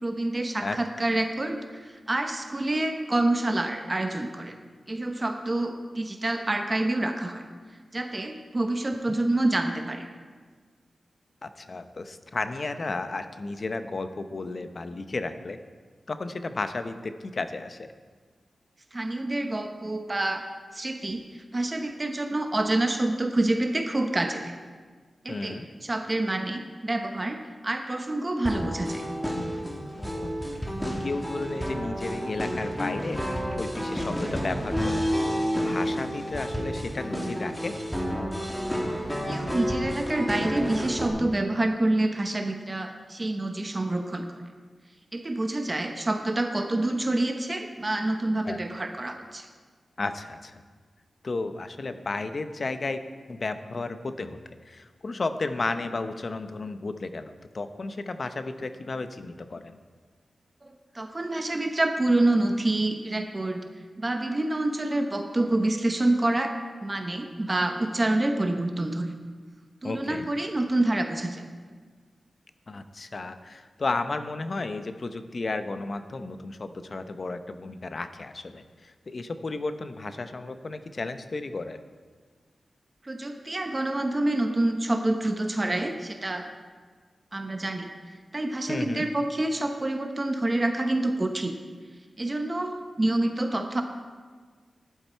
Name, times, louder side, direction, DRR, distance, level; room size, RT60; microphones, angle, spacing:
voice 1, 0.0-4.6 4.9-7.5 7.9-10.1 18.9-20.4 20.7-21.2 21.5-24.5 25.2-29.0 39.3-44.4 45.1-49.5 60.6-63.7 64.0-66.5 66.8-69.1 69.8-71.4 83.0-86.5 87.3-87.9 88.3-91.6 92.2-93.8, right 2 dB, 30° right, 5 dB, 0.9 m, -27 dB
voice 2, 11.4-15.6 16.1-17.9 25.3-25.7 30.0-30.3 30.8-33.2 33.6-35.2 35.5-37.8 48.4-48.6 50.0-50.6 51.2-53.0 53.3-54.4 54.6-59.8 69.8-70.3 72.7-81.8 88.7-89.0, left 3 dB, 50° left, 9 dB, 0.8 m, -33 dB
sound 1, 28.4-41.1, equal, 5° left, 2.0 m, -30 dB
12.0 x 11.0 x 4.5 m, 1.5 s
wide cardioid pair, 85°, 0 cm